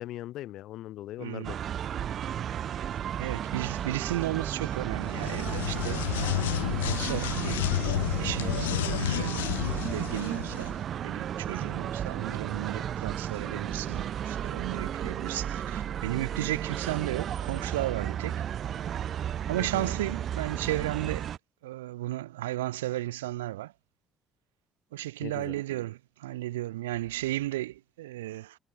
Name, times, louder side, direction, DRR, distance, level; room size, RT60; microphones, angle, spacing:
voice 1, 0.0-1.6 19.6-19.9 25.2-25.6, left 14 dB, 65° left, 4.5 m, -39 dB
voice 2, 1.2-1.5 3.2-6.1 6.7-7.8 8.2-9.5 9.9-10.8 11.0-18.4 19.5-21.3 21.6-23.7 24.9-28.6, right 16 dB, 85° right, 3.9 m, -34 dB
sound 1, 1.4-21.4, right 9 dB, 55° right, 7.4 m, -33 dB
sound 2, 5.0-10.7, left 15 dB, 85° left, 2.3 m, -31 dB
hypercardioid pair, 55°, 0 cm